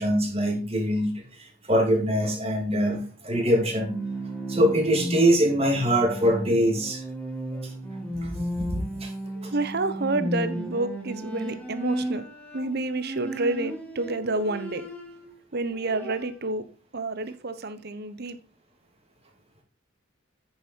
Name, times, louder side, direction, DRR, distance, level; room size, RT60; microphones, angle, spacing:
voice 1, 0.0-3.9 4.5-7.0 8.2-9.1 9.4-9.5, equal, 30° right, 1 dB, 2.7 m, -24 dB
Bowed string instrument, 3.6-15.4 15.7-16.5, right 1 dB, 5° left, 2.0 m, -34 dB
voice 2, 9.3-12.2 12.5-14.9 15.5-16.6 16.9-18.4, right 2 dB, 50° right, 11 dB, 1.0 m, -29 dB
9.1 x 7.2 x 4.6 m, 0.36 s
head